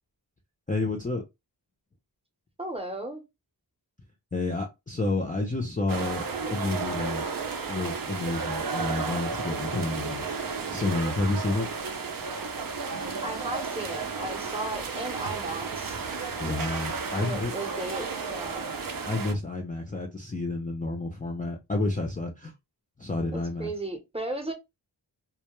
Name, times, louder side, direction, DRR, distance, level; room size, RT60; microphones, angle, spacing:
voice 1, 0.7-1.2 4.3-7.3 7.7-10.3 10.7-11.7 16.4-17.5 19.0-22.5 23.0-23.7, left 2 dB, 20° left, 0.4 m, -30 dB
voice 2, 2.6-3.2 13.2-16.0 17.2-18.7 23.3-24.5, right 2 dB, 15° right, 0.7 m, -35 dB
sound 1, 5.9-19.3, right 5 dB, 50° right, 0.5 m, -33 dB
2.2 x 2.1 x 2.9 m
wide cardioid pair, 50°, 44 cm